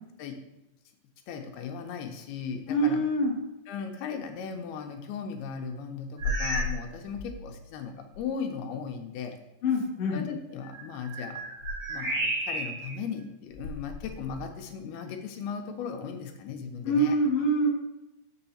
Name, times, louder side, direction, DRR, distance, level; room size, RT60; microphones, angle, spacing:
voice 1, 1.3-3.0 3.7-9.4 10.1-11.4 11.9-17.2, left 6 dB, 90° left, 4 dB, 2.8 m, -37 dB
voice 2, 2.7-3.3 9.6-10.2 16.8-17.7, right 1 dB, 45° left, -3 dB, 2.3 m, -25 dB
sound 1, 6.2-6.8 7.1-7.5 8.1-8.2 10.6-12.9 13.5-14.5, equal, 45° right, 3.6 m, -32 dB
6.9 x 6.8 x 4.2 m, 0.96 s
omnidirectional pair, 4.4 m